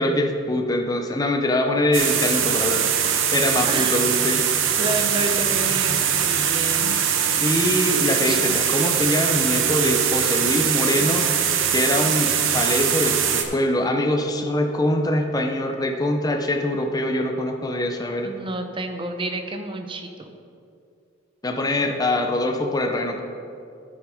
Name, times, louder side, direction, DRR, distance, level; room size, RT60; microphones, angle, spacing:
voice 1, 0.0-2.8 3.3-4.5 7.4-11.3 11.7-18.3 21.4-23.2, left 1 dB, 20° left, 3 dB, 0.6 m, -23 dB
sound 1, 1.9-13.4, right 8 dB, 90° right, 0.8 m, -22 dB
voice 2, 3.7-4.1 4.8-7.0 7.3-7.6 8.3-8.4 18.2-20.3, right 2 dB, 25° right, 6 dB, 0.7 m, -30 dB
11.0 x 6.3 x 4.9 m, 2.5 s
head